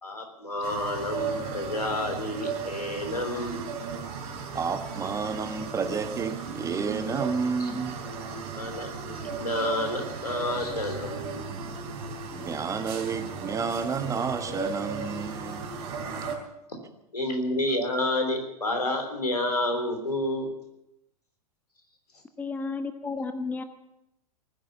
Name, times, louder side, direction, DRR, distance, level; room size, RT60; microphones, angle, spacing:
voice 1, 0.0-3.6 5.0-5.1 7.6-7.7 8.6-11.5 17.1-20.5, left 1 dB, 80° left, 4 dB, 3.6 m, -30 dB
sound 1, 0.6-16.3, right 5 dB, 45° right, 4.1 m, -36 dB
voice 2, 4.5-7.9 11.5-11.8 12.3-15.7, right 5 dB, 15° right, 8 dB, 1.3 m, -31 dB
voice 3, 22.4-23.6, left 4 dB, 10° left, 9 dB, 1.0 m, -32 dB
20.0 x 10.0 x 7.1 m, 0.85 s
figure-of-eight pair, 95°, 20 cm